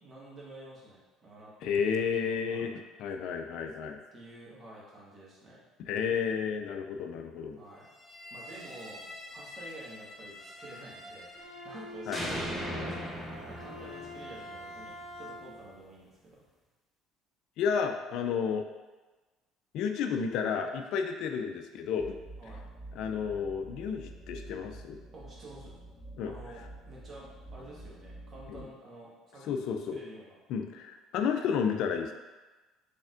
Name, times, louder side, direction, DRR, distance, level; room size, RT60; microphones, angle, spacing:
voice 1, 0.0-2.7 4.1-5.6 7.5-7.9 8.3-9.0 9.3-16.4 22.4-22.6 25.1-25.7 26.2-30.4, right 1 dB, 40° right, -5 dB, 1.4 m, -49 dB
voice 2, 1.6-2.7 3.0-4.0 5.9-7.6 12.1-12.4 17.6-18.7 19.7-22.2 23.0-25.0 26.2-26.3 28.5-28.7 29.4-30.0 30.5-32.1, left 6 dB, 65° left, 5 dB, 0.3 m, -31 dB
sound 1, 8.0-11.8 12.1-15.1, equal, 5° right, 0.8 m, -41 dB
Bowed string instrument, 11.3-15.7, left 1 dB, 70° right, 1.0 m, -45 dB
sound 2, 22.0-28.6, right 2 dB, 35° left, 0.7 m, -48 dB
4.0 x 3.4 x 2.5 m, 1.2 s
hypercardioid pair, 70°, 0 cm